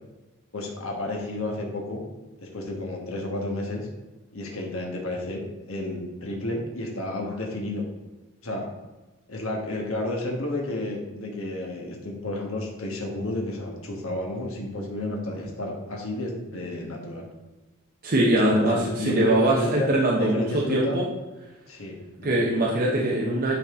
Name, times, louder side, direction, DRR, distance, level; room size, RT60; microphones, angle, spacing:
voice 1, 0.5-2.0 2.4-3.9 4.3-7.8 8.4-8.7 9.3-17.3 18.3-19.9 20.2-21.0 21.7-22.4, left 2 dB, 65° left, 0 dB, 1.4 m, -31 dB
voice 2, 18.0-21.1 22.2-23.6, right 1 dB, 45° right, -4 dB, 0.9 m, -22 dB
9.8 x 4.2 x 3.7 m, 1.1 s
head